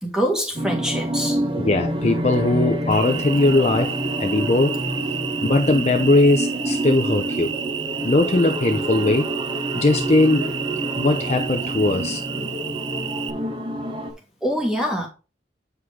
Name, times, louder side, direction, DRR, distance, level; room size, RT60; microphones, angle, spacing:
voice 1, 0.0-1.4 14.4-15.1, equal, 5° right, 1.8 m, -24 dB
sound 1, 0.6-14.1, right 1 dB, 25° right, 1.0 m, -28 dB
voice 2, 1.6-4.8 5.4-7.5 8.0-9.3 9.7-10.5 11.0-12.2, left 2 dB, 35° left, 0.6 m, -19 dB
Cricket, 2.9-13.3, right 8 dB, 85° right, 0.7 m, -31 dB
7.9 x 4.9 x 3.6 m
head